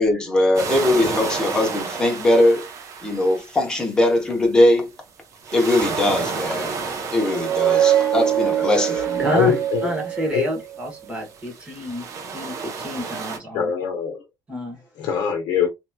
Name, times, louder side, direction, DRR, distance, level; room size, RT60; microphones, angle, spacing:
voice 1, 0.0-2.7 3.0-4.9 5.5-6.7 7.1-9.4, left 1 dB, 10° left, 0.8 m, -20 dB
sound 1, 0.5-4.3 5.3-10.3 11.2-13.4, right 5 dB, 50° right, 0.8 m, -32 dB
sound 2, 7.2-10.8, right 11 dB, 70° right, 1.4 m, -22 dB
voice 2, 8.6-13.7 14.5-14.8, equal, 15° right, 1.4 m, -29 dB
voice 3, 9.3-9.9 10.3-10.4 13.5-14.2 15.0-15.7, left 8 dB, 70° left, 0.7 m, -22 dB
3.1 x 2.9 x 2.2 m
cardioid pair, 160°, 7 cm